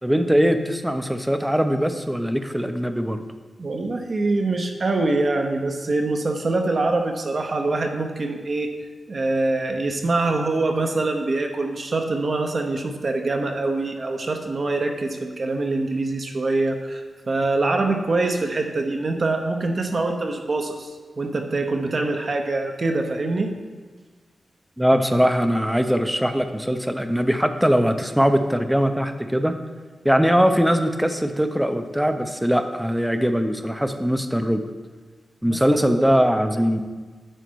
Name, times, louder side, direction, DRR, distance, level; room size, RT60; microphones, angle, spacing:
voice 1, 0.0-3.2 24.8-29.6 30.0-34.7 35.4-36.8, equal, 5° right, 8 dB, 0.6 m, -21 dB
voice 2, 3.6-8.7 9.1-23.5 35.4-36.1, right 2 dB, 50° right, 4 dB, 0.9 m, -24 dB
9.0 x 5.7 x 4.6 m, 1.4 s
wide cardioid pair, 100°, 0 cm